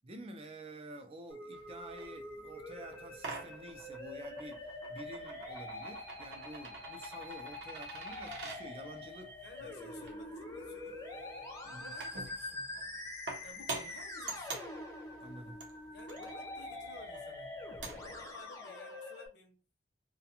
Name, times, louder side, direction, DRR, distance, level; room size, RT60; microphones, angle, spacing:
voice 1, 0.0-9.9 11.6-11.9 15.2-15.7, right 1 dB, 30° right, 0.4 m, -50 dB
Musical instrument, 1.3-19.3, left 2 dB, 15° left, 0.6 m, -45 dB
sound 1, 1.5-18.2, right 3 dB, 70° right, 0.7 m, -48 dB
voice 2, 9.4-11.1 11.7-12.8 13.4-14.6 15.9-17.7 18.0-19.6, left 2 dB, 60° left, 0.7 m, -54 dB
2.4 x 2.2 x 2.8 m
head